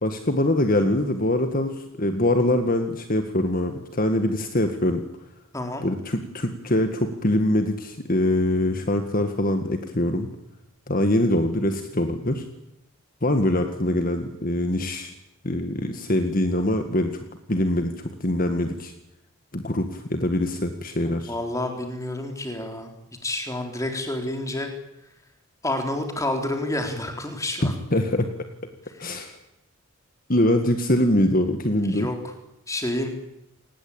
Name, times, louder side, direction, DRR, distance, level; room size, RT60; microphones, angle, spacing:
voice 1, 0.0-5.0 5.8-10.3 10.9-12.5 13.2-15.1 15.4-17.2 17.5-18.9 19.5-21.3 27.6-28.3 29.0-29.4 30.3-32.1, left 1 dB, 40° left, 7 dB, 1.9 m, -23 dB
voice 2, 5.5-5.9 21.0-22.9 23.2-24.7 25.6-27.7 31.8-32.2 32.7-33.1, left 1 dB, 15° left, 4 dB, 4.0 m, -29 dB
28.0 x 20.0 x 8.8 m, 0.87 s
head